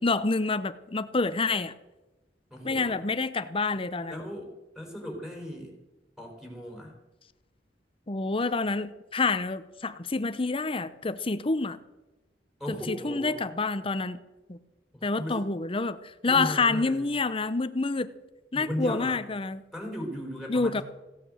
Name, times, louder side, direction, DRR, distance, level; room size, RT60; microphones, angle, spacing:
voice 1, 0.0-1.7 2.6-4.1 8.1-11.8 12.7-14.2 14.5-14.6 15.0-18.1 18.5-19.6 20.5-20.8, left 3 dB, 30° left, 13 dB, 0.8 m, -28 dB
voice 2, 2.5-3.0 4.1-5.8 6.2-7.0 12.6-13.4 14.9-15.4 16.3-17.0 18.5-19.2 19.7-20.8, equal, 5° right, 0 dB, 4.5 m, -37 dB
16.5 x 9.1 x 7.8 m, 1.0 s
head